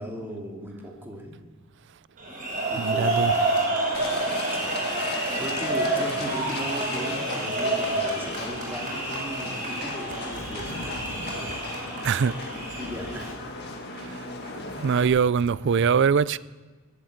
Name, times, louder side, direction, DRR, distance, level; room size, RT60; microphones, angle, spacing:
voice 1, 0.0-1.4 2.7-3.4 5.4-10.9 12.5-13.4, equal, 10° right, 2.5 m, -37 dB
sound 1, 2.2-13.3, right 2 dB, 35° right, 5.3 m, -29 dB
voice 2, 2.8-3.3 12.0-12.4 13.9-14.3 14.8-16.4, right 6 dB, 55° right, 0.4 m, -23 dB
Livestock farm animals working animals, 3.9-15.0, left 2 dB, 50° left, 1.9 m, -37 dB
Zipper (clothing), 7.6-8.0 8.3-9.2 9.9-11.6 12.3-13.4 14.4-15.9, left 1 dB, 75° left, 2.3 m, -43 dB
21.0 x 8.2 x 8.0 m
head